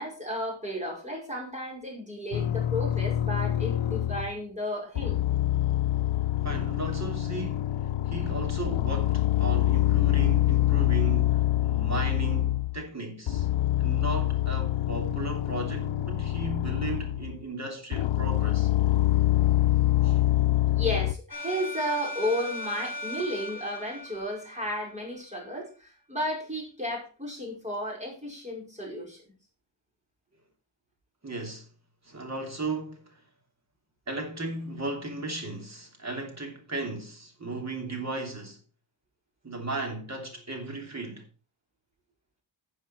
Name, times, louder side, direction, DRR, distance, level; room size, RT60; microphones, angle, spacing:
voice 1, 0.0-5.2 20.7-29.2, equal, 15° right, 5.3 m, -33 dB
sound 1, 2.3-4.4 5.0-12.8 13.3-17.4 17.9-21.2, left 14 dB, 80° left, 0.7 m, -25 dB
voice 2, 6.4-13.5 13.8-18.7 20.0-20.3 31.2-31.7 32.0-33.2 34.1-38.6 39.4-41.3, right 2 dB, 35° right, 3.0 m, -36 dB
sound 2, 21.3-25.2, equal, 45° left, 3.9 m, -38 dB
12.5 x 7.2 x 4.4 m
wide cardioid pair, 155°, 46 cm